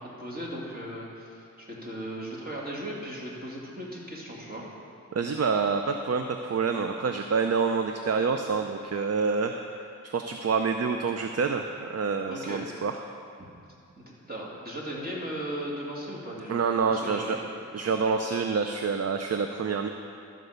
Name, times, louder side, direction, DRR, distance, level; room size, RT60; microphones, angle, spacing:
voice 1, 0.0-4.7 12.3-12.7 14.0-17.4, equal, 30° right, -4 dB, 2.6 m, -37 dB
voice 2, 5.1-13.0 16.5-17.4 17.7-19.9, right 5 dB, 50° right, 5 dB, 0.6 m, -27 dB
13.5 x 5.3 x 6.7 m, 2.5 s
wide cardioid pair, 65°, 33 cm